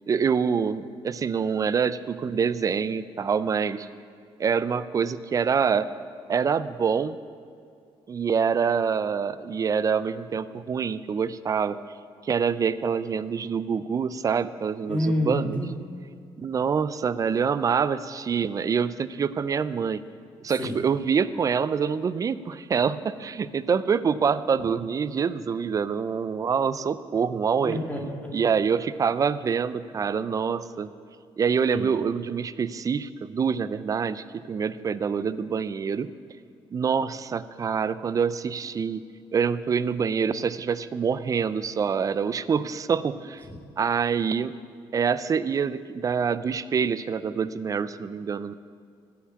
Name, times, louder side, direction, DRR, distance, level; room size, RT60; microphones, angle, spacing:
voice 1, 0.1-3.9 4.4-5.9 6.3-7.2 8.1-11.8 12.2-15.6 16.4-20.0 20.4-27.8 28.3-30.9 31.4-36.1 36.7-39.0 39.3-43.4 43.8-44.5 44.9-48.5, right 6 dB, 35° right, 15 dB, 0.4 m, -26 dB
voice 2, 14.9-15.7 20.6-20.7 27.6-28.3 31.7-31.8, left 1 dB, 15° left, -1 dB, 2.3 m, -27 dB
14.5 x 5.9 x 8.5 m, 2.2 s
cardioid pair, 115°, 10 cm